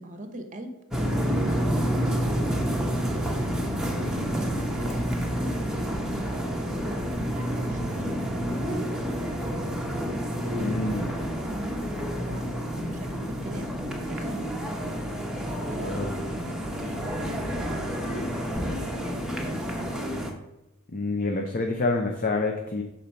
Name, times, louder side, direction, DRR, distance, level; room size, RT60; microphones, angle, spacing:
voice 1, 0.0-2.4 3.0-3.4 3.9-8.1 8.5-9.6 10.4-14.9 15.7-19.8, right 1 dB, 35° right, 7 dB, 0.9 m, -41 dB
Commercial center tour, 0.9-20.3, equal, 5° right, 0.9 m, -29 dB
voice 2, 10.6-11.1 15.8-16.1 20.9-22.8, left 3 dB, 40° left, 3 dB, 0.6 m, -27 dB
6.7 x 3.9 x 5.6 m, 0.94 s
head